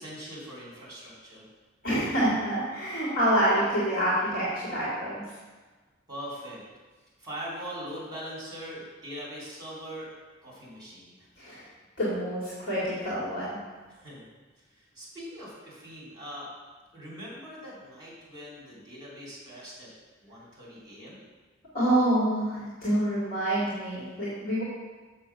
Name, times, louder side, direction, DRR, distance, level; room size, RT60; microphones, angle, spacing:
voice 1, 0.0-1.4 6.1-6.6 7.2-10.1 10.4-11.3 13.9-14.2 14.7-16.5 16.9-19.9 20.2-21.2, equal, 20° right, -6 dB, 2.9 m, -41 dB
voice 2, 1.8-5.2 11.4-11.6 12.0-13.6 21.7-24.6, right 1 dB, 50° left, -9 dB, 2.4 m, -27 dB
7.3 x 6.2 x 5.7 m, 1.3 s
head